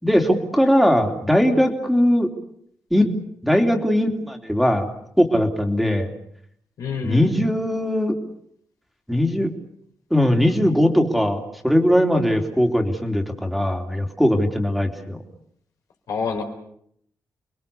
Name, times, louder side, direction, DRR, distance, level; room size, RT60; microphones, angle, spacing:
voice 1, 0.0-2.3 2.9-3.1 3.4-4.9 5.2-6.1 7.0-8.1 9.1-9.5 10.1-15.2, equal, ahead, 4 dB, 3.0 m, -19 dB
voice 2, 6.8-7.3 16.1-16.4, left 5 dB, 85° left, 3 dB, 4.5 m, -27 dB
30.0 x 21.0 x 7.0 m, 0.70 s
cardioid pair, 110°, 6 cm